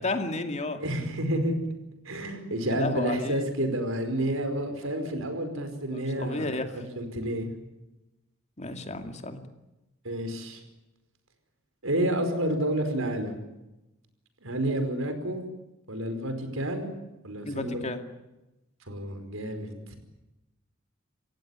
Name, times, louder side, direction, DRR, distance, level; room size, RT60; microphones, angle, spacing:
voice 1, 0.0-0.8 2.7-3.4 5.9-6.6 8.6-9.4 17.4-18.0, left 2 dB, 35° left, 7 dB, 2.4 m, -32 dB
voice 2, 0.8-1.6 2.0-7.5 10.0-10.6 11.8-13.4 14.4-15.4 15.9-16.9 17.2-17.9 18.9-20.0, right 1 dB, 80° right, 7 dB, 5.0 m, -30 dB
28.0 x 15.5 x 9.8 m, 0.97 s
head